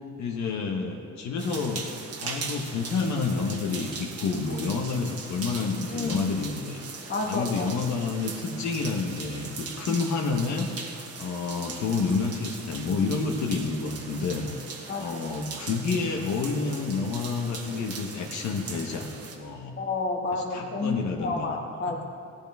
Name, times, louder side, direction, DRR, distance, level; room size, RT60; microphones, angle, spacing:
voice 1, 0.2-1.9 2.2-6.8 7.3-10.7 11.2-14.5 15.0-19.8 20.3-21.4, left 4 dB, 70° left, 1 dB, 1.1 m, -29 dB
sound 1, 1.4-19.4, right 4 dB, 55° right, 1.5 m, -40 dB
voice 2, 5.9-6.3 7.1-7.7 14.9-15.4 19.8-22.1, left 3 dB, 40° left, 2 dB, 1.5 m, -30 dB
16.0 x 11.5 x 3.5 m, 2.6 s
cardioid pair, 140°, 29 cm